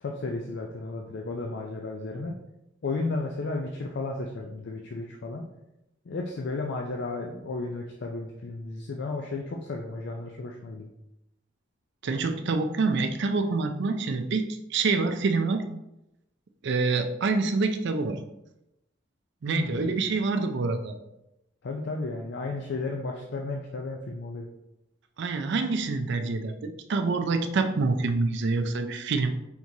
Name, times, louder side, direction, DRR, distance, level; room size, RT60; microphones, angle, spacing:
voice 1, 0.0-2.3 2.8-5.4 6.1-10.9 19.5-19.9 21.6-24.5, left 3 dB, 60° left, 1 dB, 0.4 m, -33 dB
voice 2, 12.0-15.7 16.6-18.2 19.4-21.0 25.2-29.4, right 3 dB, 60° right, 7 dB, 0.4 m, -26 dB
4.6 x 3.6 x 2.7 m, 0.88 s
head